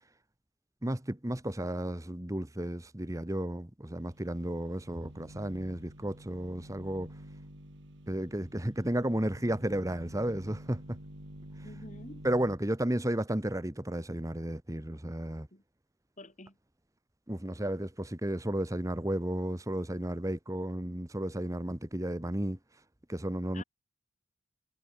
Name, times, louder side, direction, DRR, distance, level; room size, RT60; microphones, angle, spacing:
voice 1, 0.8-7.2 8.1-11.0 11.6-11.7 12.2-15.5 17.3-22.8 23.1-23.6, right 1 dB, 15° right, 1.2 m, -33 dB
sound 1, 4.0-12.6, right 1 dB, 60° right, 3.5 m, -49 dB
voice 2, 11.6-12.2 15.5-15.6 16.2-16.6 23.5-23.6, left 2 dB, 35° left, 4.8 m, -48 dB
head